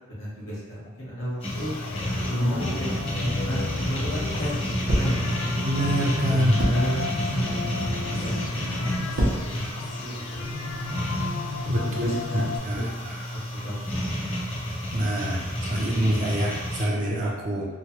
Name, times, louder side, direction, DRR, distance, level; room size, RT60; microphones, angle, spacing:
voice 1, 0.1-1.8 2.3-5.5 6.3-7.8 8.1-10.5 11.6-12.4 12.7-14.1, equal, 60° left, -7 dB, 1.1 m, -32 dB
sound 1, 1.4-16.8, equal, 30° left, 0.7 m, -31 dB
sound 2, 1.6-12.6, left 4 dB, 85° left, 0.3 m, -34 dB
sound 3, 4.9-5.3 6.6-6.9 7.7-8.0 8.9-9.6 10.2-11.1, right 1 dB, 80° right, 0.7 m, -27 dB
voice 2, 5.6-6.7 11.7-13.1 14.9-17.6, equal, 40° right, -3 dB, 0.5 m, -26 dB
3.0 x 2.1 x 2.8 m, 1.2 s
head